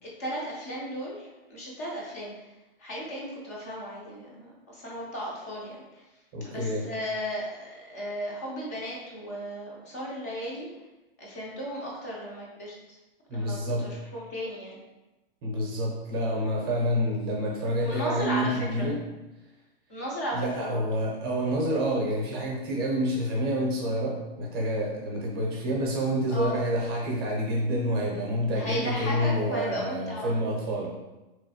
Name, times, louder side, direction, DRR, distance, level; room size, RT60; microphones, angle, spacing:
voice 1, 0.0-2.5 2.8-6.0 6.4-10.7 11.2-13.0 13.3-14.8 16.4-16.5 17.8-18.9 19.9-20.8 26.3-26.7 28.5-30.4, equal, 15° left, -4 dB, 0.4 m, -35 dB
voice 2, 6.3-6.9 13.3-13.9 15.4-19.0 20.3-31.0, equal, 25° right, -2 dB, 0.6 m, -28 dB
4.0 x 3.0 x 2.8 m, 1.0 s
hypercardioid pair, 175°, 31 cm